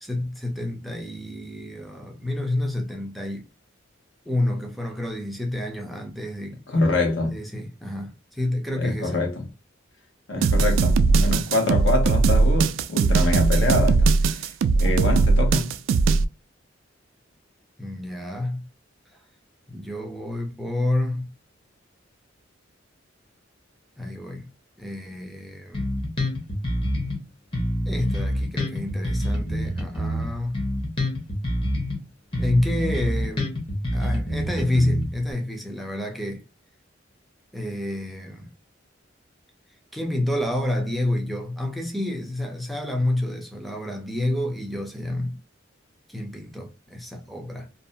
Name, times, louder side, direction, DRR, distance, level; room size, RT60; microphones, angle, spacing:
voice 1, 0.0-3.4 4.3-6.6 7.3-9.2 17.8-18.7 19.7-21.3 24.0-24.5 24.8-25.9 27.9-30.7 32.4-33.5 33.9-36.4 37.5-38.5 39.9-45.4 46.1-47.7, left 1 dB, ahead, 0.5 m, -29 dB
voice 2, 6.7-7.4 8.8-9.5 10.3-15.7, left 2 dB, 70° left, 0.9 m, -25 dB
sound 1, 10.4-16.2, right 4 dB, 90° right, 0.3 m, -19 dB
Bass guitar, 25.7-27.2 27.5-32.0 32.3-35.3, equal, 30° left, 0.9 m, -26 dB
2.6 x 2.1 x 2.5 m
head